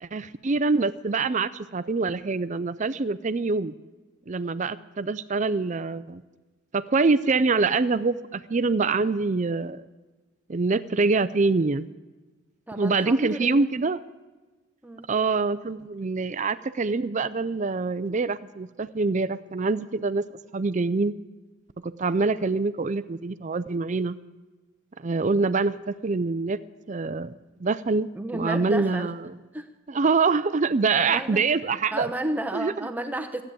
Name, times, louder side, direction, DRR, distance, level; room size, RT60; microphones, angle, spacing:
voice 1, 0.0-3.7 4.3-6.2 6.7-9.8 10.5-11.9 12.8-14.0 15.1-20.2 20.5-21.1 21.8-24.2 25.0-26.6 26.9-27.3 27.6-29.3 29.9-32.1 32.5-32.9, right 4 dB, 35° right, 15 dB, 0.4 m, -25 dB
voice 2, 12.7-13.7 14.8-15.1 22.4-22.5 28.1-29.1 29.5-29.7 31.0-31.4 31.9-33.4, right 1 dB, 5° right, 5 dB, 0.8 m, -32 dB
15.5 x 9.0 x 8.4 m, 1.2 s
head